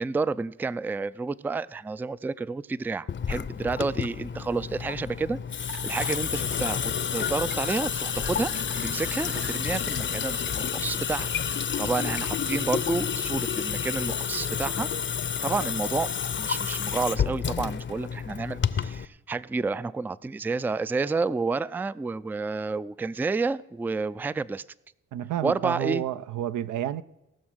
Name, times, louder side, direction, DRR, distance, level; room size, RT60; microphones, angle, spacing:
voice 1, 0.0-8.5 8.8-14.9 15.4-16.1 16.4-24.6 25.4-26.0, right 4 dB, 5° right, 0.3 m, -30 dB
Water tap faucet / Sink (filling or washing) / Drip, 3.1-19.1, left 7 dB, 40° left, 0.6 m, -30 dB
sound 1, 5.7-6.3 6.5-6.7 7.3-7.7 8.2-9.6 10.3-10.5 10.8-10.9, right 5 dB, 35° right, 0.9 m, -45 dB
voice 2, 25.1-27.0, right 11 dB, 75° right, 0.6 m, -30 dB
18.5 x 6.3 x 6.3 m
supercardioid pair, 60°, 30 cm